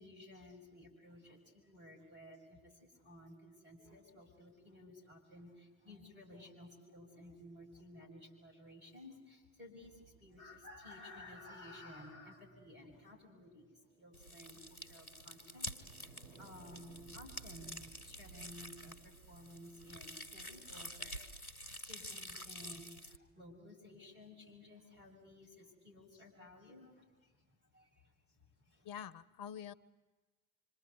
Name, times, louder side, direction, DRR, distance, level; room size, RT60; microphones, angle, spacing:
voice 1, 0.0-21.1 21.8-28.9, left 1 dB, 85° right, -3 dB, 6.8 m, -55 dB
sound 1, 9.8-12.0 13.8-21.8, right 7 dB, 60° right, 3.9 m, -62 dB
sound 2, 14.1-23.2, equal, 90° left, 1.0 m, -48 dB
voice 2, 28.8-29.7, left 8 dB, 55° left, 18 dB, 1.0 m, -46 dB
26.5 x 25.0 x 8.2 m, 1.2 s
figure-of-eight pair, 50°, 42 cm